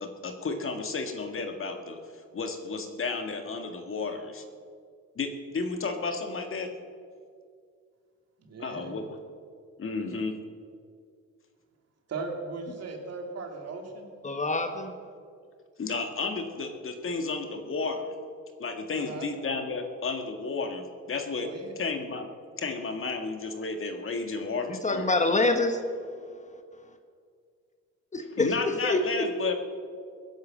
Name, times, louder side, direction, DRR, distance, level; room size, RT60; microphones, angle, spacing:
voice 1, 0.0-2.0 2.3-4.4 5.2-6.7 8.6-9.0 9.8-10.3 15.8-18.1 18.6-21.5 21.8-22.3 22.6-25.1 28.4-29.6, left 4 dB, 45° left, 6 dB, 1.9 m, -32 dB
voice 2, 8.4-9.0 12.1-14.1 18.9-19.3 21.4-21.8, right 3 dB, 55° right, 3 dB, 2.9 m, -38 dB
voice 3, 14.2-14.9 24.7-25.8 28.1-29.2, left 2 dB, 25° left, 7 dB, 1.4 m, -26 dB
17.5 x 10.5 x 7.5 m, 2.2 s
cardioid pair, 90°, 30 cm